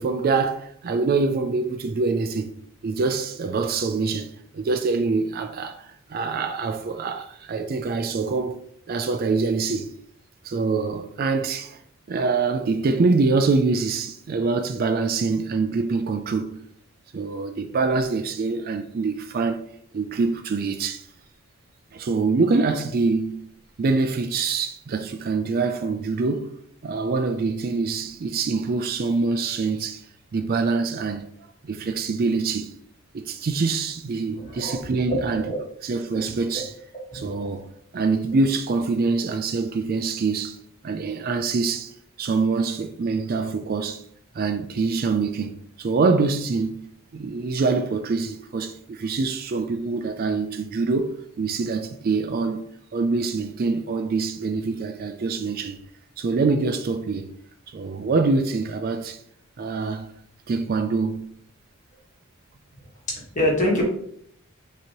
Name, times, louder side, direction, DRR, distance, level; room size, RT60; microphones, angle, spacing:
voice 1, 0.0-2.5 2.8-8.6 8.9-9.9 10.4-11.8 12.1-16.6 17.1-19.7 19.9-21.0 21.9-23.5 23.8-26.5 26.8-30.0 30.3-31.3 31.6-32.7 33.1-35.5 35.8-36.7 37.1-37.7 37.9-40.6 40.8-41.9 42.2-44.0 44.3-52.6 52.9-55.8 56.2-57.3 57.7-59.2 59.6-60.1 60.5-61.3, right 4 dB, 45° right, 0.3 m, -25 dB
voice 2, 34.4-34.8 35.0-35.6 36.1-36.3 37.1-37.2 63.1-63.8, equal, 35° left, 1.4 m, -25 dB
6.1 x 2.9 x 3.0 m
head